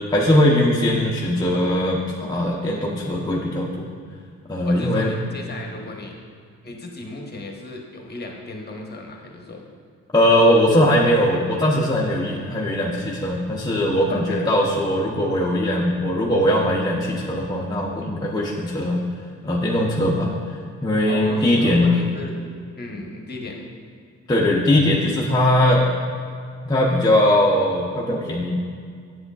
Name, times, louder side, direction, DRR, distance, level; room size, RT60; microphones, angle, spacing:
voice 1, 0.0-3.9 4.5-5.1 10.1-19.0 19.4-20.3 20.8-22.0 24.3-25.8 26.7-28.6, left 1 dB, 15° left, -4 dB, 0.7 m, -20 dB
voice 2, 4.6-6.2 6.6-9.6 14.1-14.4 21.1-22.4 22.7-23.6, left 2 dB, 35° left, 1 dB, 1.1 m, -35 dB
7.9 x 7.6 x 2.4 m, 2.1 s
cardioid pair, 90°, 30 cm